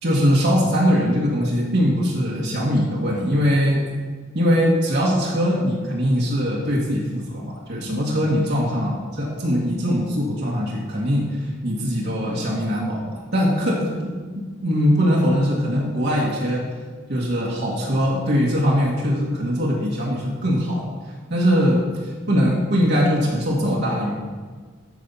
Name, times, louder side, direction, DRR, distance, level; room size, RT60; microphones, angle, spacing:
voice 1, 0.0-3.8 4.3-14.0 14.6-16.6 17.1-20.9 21.3-24.1, equal, 55° right, -4 dB, 1.8 m, -21 dB
13.5 x 5.6 x 5.7 m, 1.5 s
head